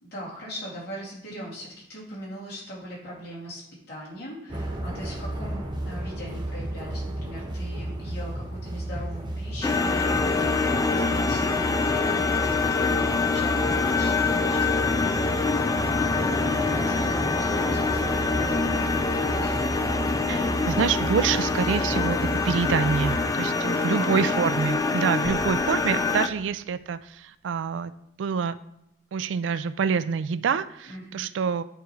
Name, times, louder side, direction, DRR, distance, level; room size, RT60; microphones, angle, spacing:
voice 1, 0.0-3.6 3.9-19.5 23.4-24.3 30.9-31.3, equal, 60° left, -6 dB, 2.5 m, -40 dB
sound 1, 4.5-23.3, right 1 dB, 25° right, 0.8 m, -33 dB
sound 2, 9.6-26.3, left 4 dB, 20° left, 0.3 m, -25 dB
voice 2, 20.3-22.2 22.4-27.9 28.2-28.6 29.1-31.6, right 6 dB, 90° right, 14 dB, 0.3 m, -26 dB
sound 3, 25.2-28.1, left 1 dB, 80° left, 1.2 m, -43 dB
9.0 x 3.2 x 4.5 m, 0.81 s
head